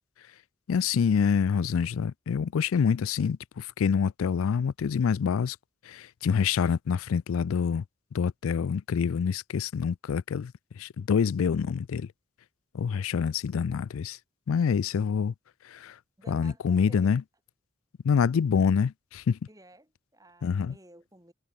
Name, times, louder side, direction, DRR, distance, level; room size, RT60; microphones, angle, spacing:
voice 1, 0.7-5.6 5.8-7.8 8.1-12.1 12.7-14.2 14.5-15.3 15.6-16.0 16.3-17.2 18.0-19.4 20.4-20.7, left 6 dB, 80° left, 0.4 m, -26 dB
voice 2, 16.2-17.2 19.5-21.3, right 1 dB, 15° right, 6.9 m, -54 dB
head